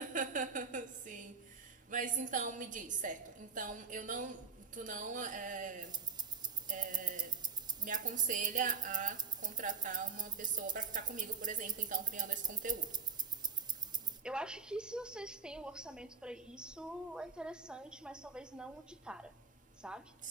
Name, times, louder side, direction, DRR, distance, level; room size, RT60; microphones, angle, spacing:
voice 1, 0.0-1.3 1.9-4.4 4.8-5.9 6.7-7.3 7.8-9.2 9.4-12.8, right 5 dB, 45° right, 2.5 m, -39 dB
sound 1, 5.8-14.2, right 6 dB, 25° right, 1.3 m, -38 dB
voice 2, 14.2-19.3 19.8-20.1, right 1 dB, 5° right, 1.2 m, -45 dB
24.0 x 23.5 x 9.8 m
head